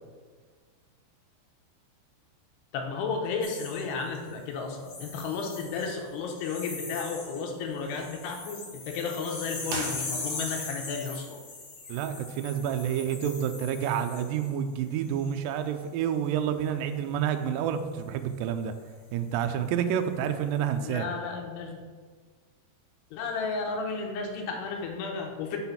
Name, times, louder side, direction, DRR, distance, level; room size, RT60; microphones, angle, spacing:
voice 1, 2.7-11.4 20.8-21.9 23.1-25.6, left 4 dB, 90° left, 2 dB, 3.0 m, -33 dB
sound 1, 3.4-4.3 4.8-6.0 6.3-7.4 7.7-14.5 15.0-15.3, left 3 dB, 55° left, 2.7 m, -40 dB
sound 2, 9.6-10.7, right 4 dB, 75° right, 1.7 m, -38 dB
voice 2, 11.9-18.7 19.1-21.1, right 9 dB, 90° right, 7 dB, 2.0 m, -29 dB
6.6 x 4.0 x 5.7 m, 1.6 s
omnidirectional pair, 4.6 m